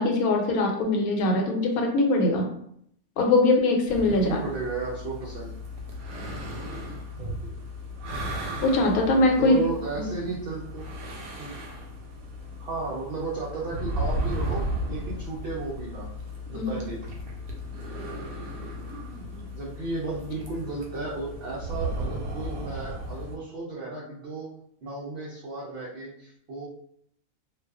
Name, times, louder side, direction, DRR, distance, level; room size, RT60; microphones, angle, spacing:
voice 1, 0.0-2.5 3.2-4.4 8.6-9.6 9.9-10.1 16.5-16.8, left 2 dB, 85° left, 2 dB, 1.1 m, -22 dB
sound 1, 3.9-23.4, equal, 85° right, 1.1 m, -35 dB
voice 2, 4.0-5.5 7.2-7.5 9.4-10.9 11.4-11.5 12.6-16.1 16.5-17.0 19.5-24.5 24.8-26.7, right 3 dB, 65° right, -6 dB, 0.6 m, -34 dB
2.4 x 2.3 x 2.3 m, 0.69 s
omnidirectional pair, 1.5 m